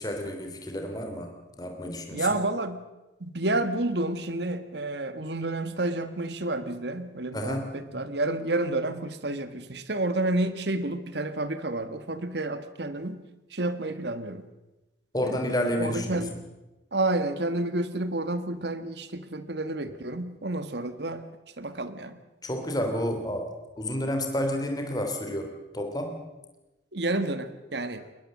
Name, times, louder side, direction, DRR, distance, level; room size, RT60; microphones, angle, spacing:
voice 1, 0.0-2.3 7.3-7.8 15.1-16.3 22.4-26.2, left 1 dB, 20° left, 4 dB, 3.1 m, -30 dB
voice 2, 2.1-2.8 3.2-13.2 13.5-14.5 15.2-15.5 15.8-16.3 16.9-21.3 21.6-22.2 26.9-28.1, right 2 dB, 65° right, 11 dB, 1.5 m, -30 dB
21.0 x 20.5 x 7.6 m, 1.0 s
head